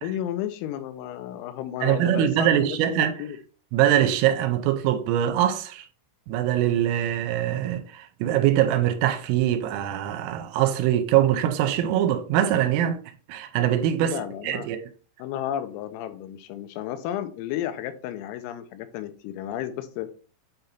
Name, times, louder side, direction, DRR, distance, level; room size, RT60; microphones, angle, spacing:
voice 1, 0.0-3.4 14.0-14.7 15.2-20.1, left 11 dB, 90° left, 3.4 m, -33 dB
voice 2, 1.8-3.1 3.7-5.9 6.3-13.0 13.3-14.8, right 11 dB, 85° right, 3.2 m, -23 dB
8.7 x 3.9 x 4.3 m
omnidirectional pair, 5.9 m